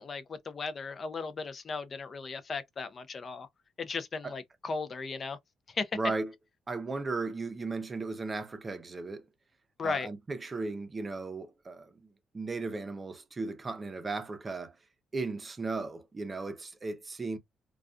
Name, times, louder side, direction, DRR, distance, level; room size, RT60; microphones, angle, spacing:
voice 1, 0.0-3.5 3.8-5.4 5.7-5.9 9.8-10.1, left 4 dB, 45° left, 0.4 m, -36 dB
voice 2, 5.9-6.3 6.7-9.2 9.8-12.0 12.3-14.8 15.1-17.4, right 3 dB, 30° right, 0.6 m, -36 dB
2.3 x 2.2 x 2.4 m
cardioid pair, 90°, 0 cm